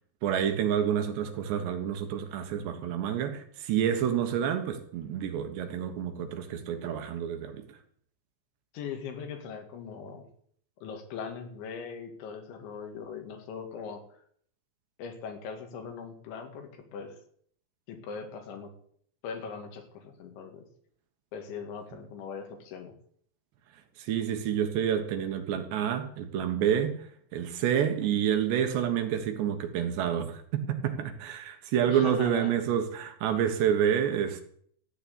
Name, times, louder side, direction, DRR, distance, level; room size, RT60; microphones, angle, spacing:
voice 1, 0.2-7.6 24.0-27.1 27.3-34.4, right 9 dB, 70° right, 3.4 m, -28 dB
voice 2, 8.7-10.3 10.8-14.2 15.0-17.2 17.9-18.8 19.2-20.7 21.3-22.9 31.9-32.6, left 6 dB, 80° left, 4.5 m, -40 dB
14.0 x 9.0 x 8.6 m
omnidirectional pair, 5.4 m